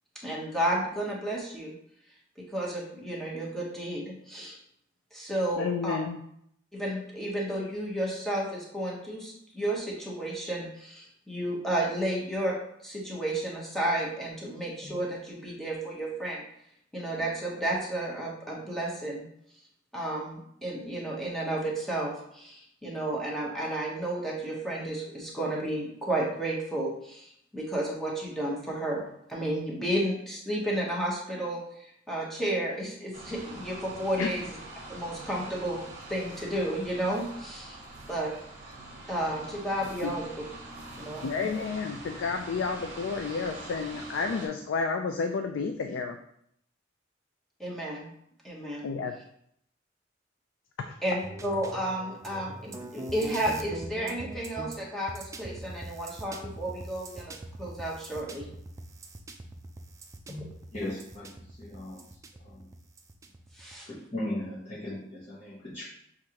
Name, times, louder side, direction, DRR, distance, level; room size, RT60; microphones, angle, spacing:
voice 1, 0.2-1.7 2.5-4.6 5.1-6.0 6.7-12.6 12.8-16.4 16.9-19.3 19.9-29.0 29.3-34.4 34.9-35.8 36.1-37.8 38.1-38.3 39.1-40.3 41.0-41.3 41.5-41.6 47.6-48.1 48.4-48.9 51.0-58.5 60.3-60.4 63.6-63.9, right 1 dB, ahead, -4 dB, 0.9 m, -32 dB
voice 2, 5.6-6.2 34.2-34.3 40.0-40.1 41.2-46.2 48.8-49.1 50.8-50.9, left 5 dB, 80° left, 5 dB, 0.3 m, -31 dB
sound 1, 33.1-44.5, right 2 dB, 40° right, 1.0 m, -44 dB
sound 2, 51.2-63.8, right 2 dB, 15° right, 0.3 m, -43 dB
voice 3, 60.7-61.3 61.6-62.0 62.4-62.7 63.8-65.8, left 1 dB, 35° left, -10 dB, 0.9 m, -37 dB
6.2 x 2.5 x 2.9 m, 0.72 s
head